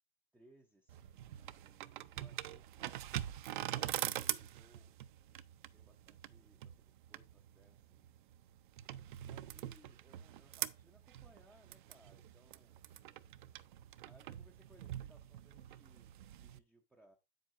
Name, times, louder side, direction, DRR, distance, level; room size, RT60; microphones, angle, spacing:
voice 1, 0.3-3.0 3.8-5.0 5.7-8.1 9.3-12.8 14.1-17.2, right 1 dB, 5° right, 0.4 m, -67 dB
sound 1, 0.9-16.6, right 13 dB, 55° right, 0.6 m, -44 dB
8.2 x 7.5 x 2.5 m
supercardioid pair, 155°, 29 cm